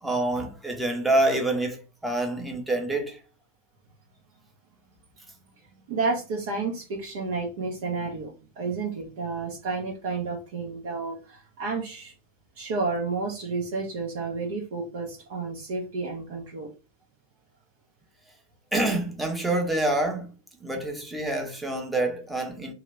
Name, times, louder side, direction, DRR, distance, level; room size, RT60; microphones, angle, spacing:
voice 1, 0.0-3.2 18.7-20.3 20.6-22.7, right 2 dB, 5° right, 0.8 m, -27 dB
voice 2, 5.9-12.1 12.6-16.7, right 4 dB, 55° right, 0.8 m, -31 dB
2.8 x 2.5 x 3.2 m
figure-of-eight pair, 90°, 0 cm